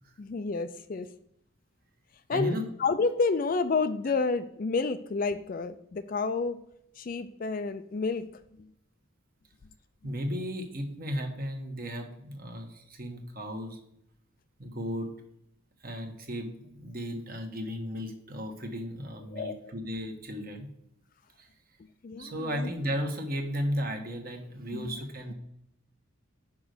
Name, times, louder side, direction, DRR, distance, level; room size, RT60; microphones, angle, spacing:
voice 1, 0.2-1.1 2.3-6.6 7.0-8.3 8.6-8.7 19.3-19.7 22.0-22.7 24.7-25.0, left 4 dB, 40° left, 11 dB, 0.3 m, -30 dB
voice 2, 2.3-2.6 10.0-13.8 14.6-15.1 15.8-20.7 21.4-21.5 22.2-25.3, equal, 40° right, 4 dB, 1.2 m, -35 dB
6.0 x 5.2 x 6.5 m, 0.76 s
head